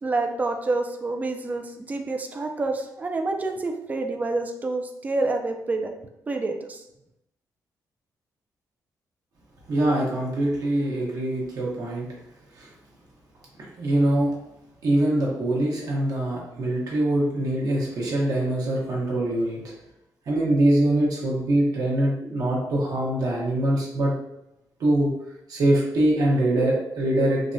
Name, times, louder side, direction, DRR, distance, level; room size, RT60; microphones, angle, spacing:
voice 1, 0.0-5.9 6.3-6.8, right 3 dB, 25° right, 5 dB, 0.3 m, -28 dB
voice 2, 9.7-12.1 12.6-12.7 13.8-14.3 14.8-19.6 20.3-24.1 24.8-25.1 25.5-27.5, right 1 dB, 60° right, -3 dB, 0.8 m, -23 dB
3.4 x 2.1 x 2.5 m, 0.83 s
cardioid pair, 125°, 7 cm